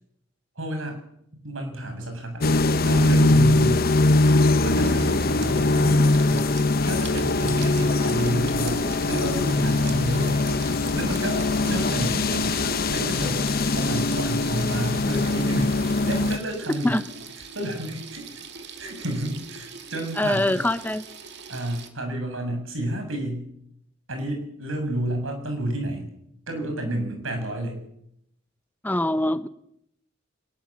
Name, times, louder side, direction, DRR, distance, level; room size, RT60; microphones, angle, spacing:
voice 1, 0.6-1.0 1.4-2.5 2.8-3.9 4.6-6.0 6.3-6.5 6.8-8.8 9.1-10.4 10.9-12.6 12.9-13.4 13.8-15.7 16.0-17.0 17.5-18.3 18.8-20.7 21.5-23.4 24.1-26.1 26.5-27.8, right 1 dB, 85° right, 5 dB, 7.2 m, -30 dB
sound 1, 2.4-16.4, left 2 dB, 50° left, 0.9 m, -22 dB
Water tap faucet / Sink (filling or washing), 4.8-21.9, right 4 dB, 60° right, 2.5 m, -41 dB
voice 2, 20.2-21.1 28.8-29.5, left 1 dB, 10° left, 12 dB, 0.8 m, -23 dB
21.5 x 20.0 x 7.5 m, 0.76 s
head